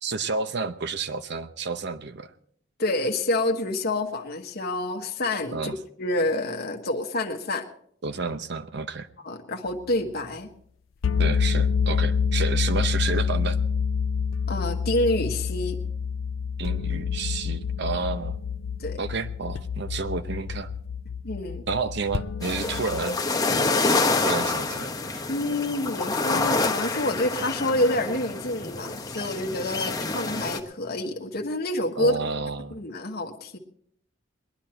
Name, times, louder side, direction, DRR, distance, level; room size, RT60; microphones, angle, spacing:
voice 1, 0.0-2.3 5.5-5.8 8.0-9.1 11.2-13.6 16.6-18.4 19.0-20.7 21.7-23.2 23.5-23.8 24.2-25.2 32.0-32.8, right 4 dB, 60° right, 11 dB, 0.8 m, -30 dB
voice 2, 2.8-7.7 9.2-10.5 14.5-15.8 18.8-19.0 21.2-21.6 25.3-32.2 32.7-33.6, left 1 dB, 55° left, 3 dB, 1.4 m, -28 dB
sound 1, 11.0-23.1, left 6 dB, 85° left, 0.5 m, -27 dB
sound 2, 22.4-30.6, left 3 dB, 20° left, 1.1 m, -27 dB
21.0 x 10.5 x 4.4 m, 0.65 s
head